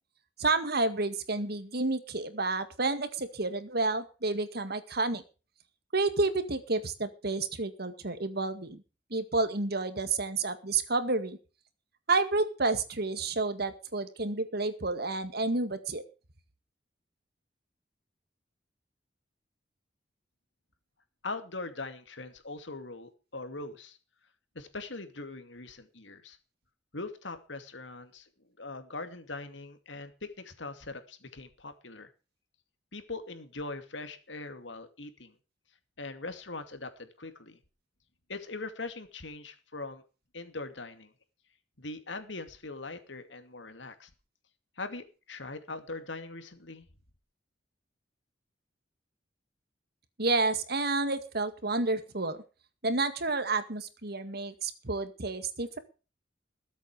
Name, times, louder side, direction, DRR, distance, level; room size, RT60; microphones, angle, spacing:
voice 1, 0.4-5.2 5.9-8.8 9.1-11.4 12.1-16.0 50.2-52.4 52.8-55.8, right 3 dB, 60° right, 11 dB, 1.9 m, -30 dB
voice 2, 21.2-24.0 24.5-26.4 26.9-32.1 32.9-35.3 36.0-37.6 38.3-40.0 40.3-41.1 41.8-44.1 44.8-46.9, left 3 dB, 75° left, 8 dB, 2.5 m, -41 dB
21.0 x 8.3 x 4.9 m, 0.34 s
head